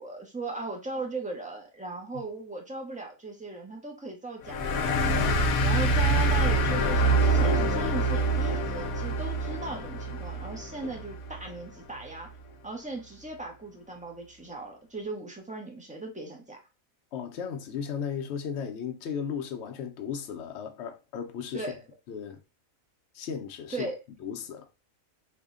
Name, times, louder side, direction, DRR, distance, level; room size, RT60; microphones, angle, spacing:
voice 1, 0.0-4.9 5.6-12.3 12.6-16.6 21.5-21.8 23.7-23.9, right 3 dB, 10° right, 0.4 m, -37 dB
sound 1, 4.5-11.6, right 2 dB, 90° left, 1.1 m, -25 dB
voice 2, 5.1-5.8 10.8-10.9 17.1-21.7 22.1-22.4 23.1-23.9 24.2-24.7, left 7 dB, 60° left, 0.8 m, -36 dB
3.5 x 2.2 x 3.6 m
omnidirectional pair, 1.5 m